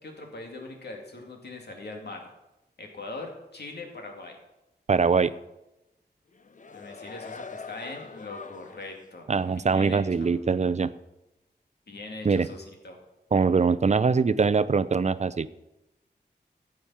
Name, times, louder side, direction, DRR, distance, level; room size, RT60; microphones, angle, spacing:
voice 1, 0.0-2.3 2.8-4.4 6.7-9.3 9.6-10.3 11.9-13.0, left 2 dB, 75° left, 2 dB, 2.4 m, -41 dB
voice 2, 4.9-5.3 9.3-10.9 12.2-12.5 13.3-15.5, right 5 dB, 40° right, 15 dB, 0.5 m, -23 dB
sound 1, 6.3-9.0 9.5-9.6, left 4 dB, 45° left, 0.7 m, -43 dB
14.5 x 8.8 x 5.7 m, 0.94 s
wide cardioid pair, 100°, 17 cm